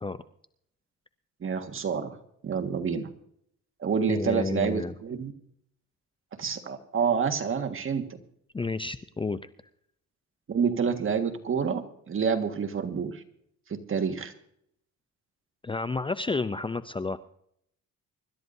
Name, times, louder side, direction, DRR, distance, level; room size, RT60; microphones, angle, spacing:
voice 1, 1.4-2.2 2.4-3.1 3.8-5.3 6.4-8.0 10.5-13.2 13.7-14.3, right 6 dB, 45° right, 6 dB, 1.7 m, -28 dB
voice 2, 4.1-4.9 8.5-9.4 15.6-17.2, left 3 dB, 15° left, 13 dB, 0.5 m, -31 dB
25.0 x 12.5 x 2.7 m, 0.71 s
cardioid pair, 90°, 30 cm